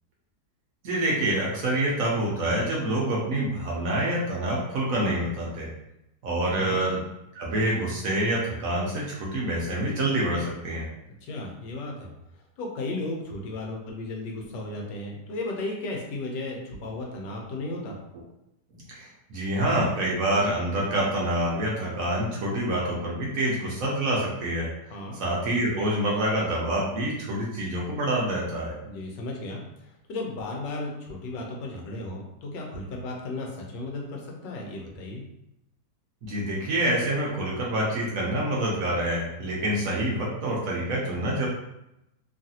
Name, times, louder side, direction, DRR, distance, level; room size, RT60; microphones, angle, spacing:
voice 1, 0.8-5.7 6.2-7.0 7.3-10.9 18.9-24.7 25.1-28.7 36.2-41.5, right 1 dB, 65° right, -4 dB, 0.9 m, -27 dB
voice 2, 11.2-12.1 12.6-18.0 24.9-25.2 28.8-29.6 30.1-35.2, left 2 dB, 90° left, 0 dB, 1.3 m, -34 dB
3.1 x 2.4 x 2.7 m, 0.86 s
omnidirectional pair, 1.9 m